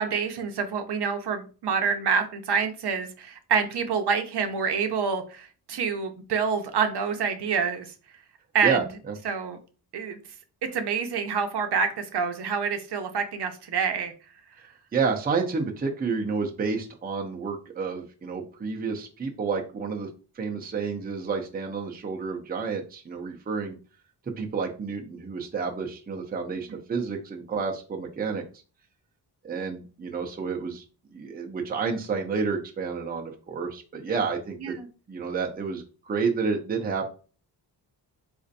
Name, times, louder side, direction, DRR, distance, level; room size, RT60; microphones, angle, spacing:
voice 1, 0.0-7.9 8.5-8.9 9.2-9.6 9.9-10.2 10.6-14.1 26.7-26.8 34.6-34.9, right 6 dB, 70° right, 6 dB, 0.6 m, -27 dB
voice 2, 8.6-9.1 14.9-20.1 20.4-23.7 24.4-28.4 29.4-30.8 31.1-34.8 35.1-37.1, right 5 dB, 20° right, 2 dB, 0.5 m, -30 dB
4.1 x 2.5 x 2.6 m, 0.36 s
wide cardioid pair, 145°, 42 cm